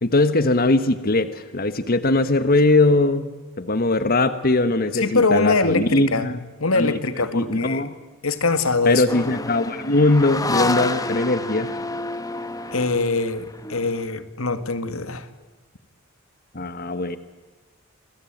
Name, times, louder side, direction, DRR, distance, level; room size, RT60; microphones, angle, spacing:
voice 1, 0.0-3.3 3.6-6.4 6.7-8.0 8.8-11.8 16.5-17.2, left 2 dB, 45° left, 12 dB, 1.3 m, -20 dB
voice 2, 4.9-6.3 6.6-7.8 8.2-9.0 12.7-15.3, left 3 dB, 85° left, 11 dB, 2.1 m, -23 dB
sound 1, 9.1-14.0, left 2 dB, 15° left, 1.3 m, -29 dB
28.5 x 22.0 x 9.3 m, 1.2 s
head